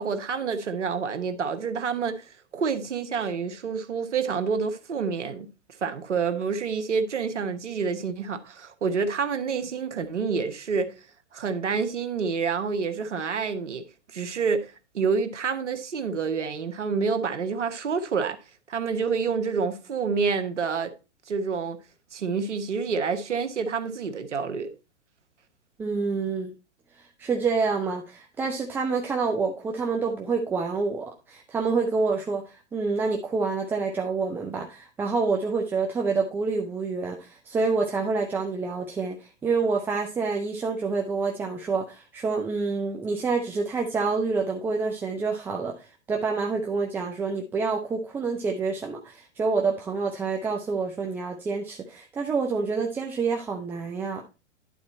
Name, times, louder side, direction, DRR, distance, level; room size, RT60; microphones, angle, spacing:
voice 1, 0.0-2.3 2.5-5.5 5.8-10.9 11.3-13.9 14.1-18.4 18.7-20.9 21.3-21.8 22.1-24.7, right 5 dB, 90° right, 1.2 m, -28 dB
voice 2, 25.8-26.5 26.9-54.2, right 4 dB, 5° right, 0.3 m, -27 dB
11.0 x 4.2 x 4.1 m
hypercardioid pair, 120°, 35 cm